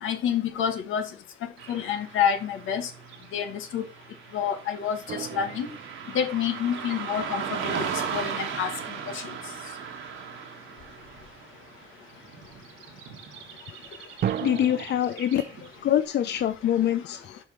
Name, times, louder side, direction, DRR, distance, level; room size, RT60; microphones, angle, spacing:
voice 1, 0.0-1.1 1.7-2.9 3.3-3.9 4.3-5.7 6.1-8.7 9.1-9.2, left 8 dB, 85° left, 1.6 m, -28 dB
Car passing by / Traffic noise roadway noise, 1.6-15.9, right 7 dB, 75° right, 1.8 m, -38 dB
sound 1, 5.1-7.2 14.2-14.9, right 9 dB, 50° right, 0.6 m, -34 dB
voice 2, 14.4-15.5 15.8-17.4, left 11 dB, 60° left, 0.6 m, -25 dB
6.0 x 5.1 x 6.1 m
cardioid pair, 90°, 20 cm